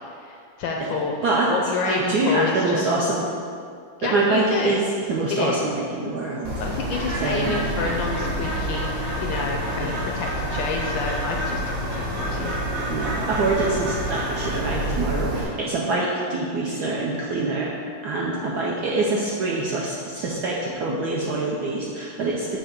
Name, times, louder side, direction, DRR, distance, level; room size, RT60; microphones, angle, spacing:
voice 1, 0.2-1.1 1.5-2.8 4.0-4.7 5.3-5.6 6.6-12.6, left 4 dB, 75° left, 1 dB, 1.1 m, -28 dB
voice 2, 1.9-3.3 4.0-4.8 5.1-6.5 7.2-7.6 9.8-10.1 12.9-17.7 18.0-22.5, right 3 dB, 75° right, -4 dB, 0.9 m, -25 dB
Bird, 6.4-15.4, equal, 60° right, 1.6 m, -28 dB
6.9 x 2.8 x 5.6 m, 2.3 s
omnidirectional pair, 2.4 m